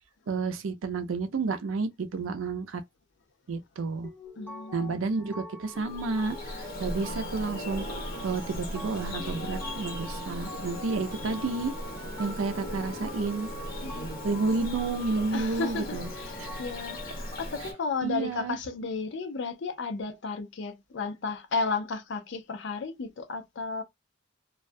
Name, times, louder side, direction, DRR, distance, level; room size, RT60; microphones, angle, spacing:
voice 1, 0.3-2.8 3.5-4.1 4.7-7.8 8.2-11.7 12.2-13.5 14.2-16.1 16.4-16.6 18.0-18.6, right 4 dB, 80° right, 0.5 m, -31 dB
sound 1, 4.0-17.8, left 2 dB, 10° left, 0.5 m, -44 dB
voice 2, 4.4-5.0 11.3-11.4 13.8-14.1 15.3-23.8, left 4 dB, 60° left, 0.5 m, -33 dB
Bird vocalization bird call bird song, 5.7-17.7, equal, 45° left, 1.1 m, -38 dB
2.3 x 2.2 x 2.5 m
head